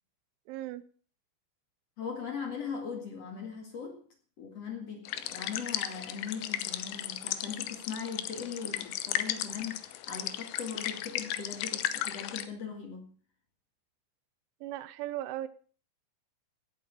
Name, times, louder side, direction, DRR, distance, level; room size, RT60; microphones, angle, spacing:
voice 1, 0.5-0.8 14.6-15.5, right 14 dB, 80° right, 15 dB, 3.3 m, -37 dB
voice 2, 2.0-4.0 4.4-13.1, left 6 dB, 50° left, 4 dB, 2.0 m, -40 dB
sound 1, 5.1-12.5, left 12 dB, 75° left, 2.9 m, -35 dB
17.5 x 8.4 x 6.3 m, 0.41 s
omnidirectional pair, 5.6 m